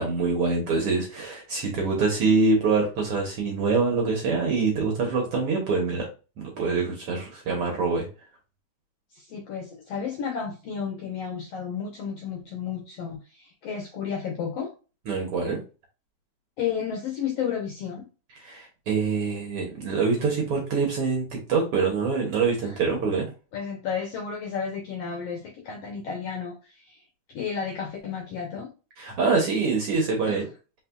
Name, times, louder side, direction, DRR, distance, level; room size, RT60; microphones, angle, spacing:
voice 1, 0.0-6.1 6.4-8.0 15.1-15.6 18.4-23.3 29.0-30.5, right 4 dB, 60° right, 1 dB, 1.6 m, -25 dB
voice 2, 9.1-14.7 16.6-18.0 22.6-22.8 23.5-27.0 27.3-28.7 30.2-30.4, left 7 dB, 75° left, 2 dB, 1.4 m, -32 dB
4.4 x 4.1 x 2.3 m, 0.33 s
omnidirectional pair, 3.6 m